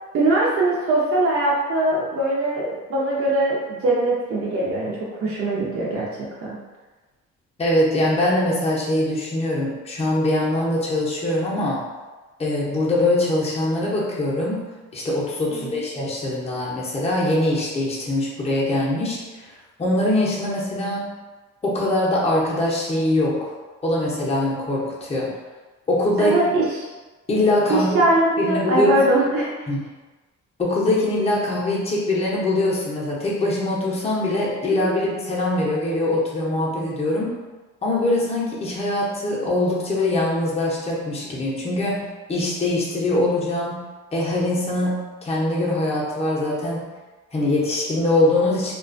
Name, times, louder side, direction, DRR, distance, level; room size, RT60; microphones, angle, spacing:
voice 1, 0.1-6.6 15.5-15.8 26.2-26.6 27.7-29.5 34.8-35.0, right 2 dB, 50° right, -5 dB, 0.5 m, -21 dB
voice 2, 7.6-11.8 12.4-14.6 14.9-19.5 19.8-21.1 21.6-23.5 23.8-25.4 25.9-26.5 27.3-28.0 28.4-29.0 29.7-29.8 30.6-37.3 37.8-43.8 44.1-46.9 47.3-48.7, left 1 dB, 20° left, -5 dB, 0.6 m, -22 dB
2.3 x 2.2 x 2.5 m, 1.2 s
cardioid pair, 90°, 30 cm